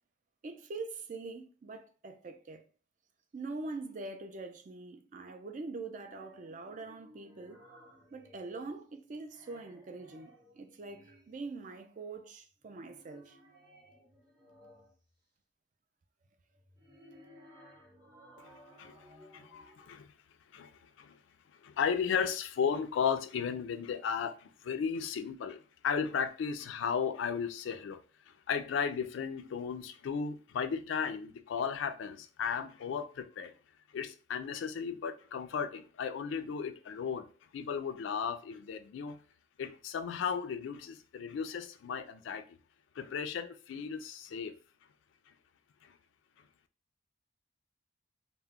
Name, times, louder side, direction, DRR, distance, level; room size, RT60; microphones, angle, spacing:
voice 1, 0.4-2.6 3.3-7.6 8.1-13.4, right 3 dB, 40° right, 0.3 m, -43 dB
sound 1, 6.0-8.9 9.2-11.5 12.6-15.1 16.6-19.9, equal, 20° right, 0.7 m, -59 dB
voice 2, 19.3-20.1 20.5-21.2 21.6-33.5 33.9-39.2 39.6-42.6 43.0-44.5 45.8-46.0, left 6 dB, 75° left, 0.3 m, -35 dB
2.2 x 2.0 x 3.5 m
head